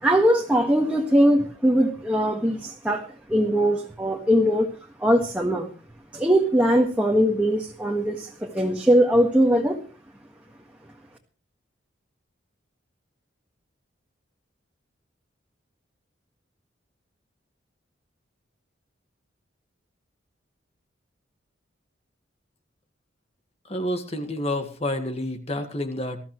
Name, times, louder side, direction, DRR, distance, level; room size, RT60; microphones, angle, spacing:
voice 1, 0.0-3.0 3.3-4.7 5.0-5.7 6.1-9.8, equal, 5° right, 0 dB, 1.8 m, -21 dB
voice 2, 23.7-26.2, left 1 dB, 30° left, 7 dB, 1.8 m, -29 dB
20.5 x 15.0 x 3.2 m, 0.36 s
head